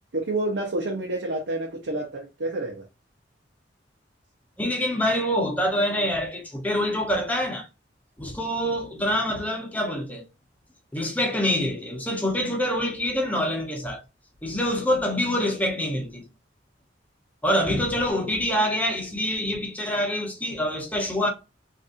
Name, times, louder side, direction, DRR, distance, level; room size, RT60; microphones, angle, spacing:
voice 1, 0.1-2.8, right 2 dB, 80° right, 0.8 m, -28 dB
voice 2, 4.6-7.7 8.2-10.2 10.9-14.0 14.4-16.2 17.4-21.3, equal, 10° left, 0.9 m, -25 dB
4.0 x 2.6 x 2.5 m
head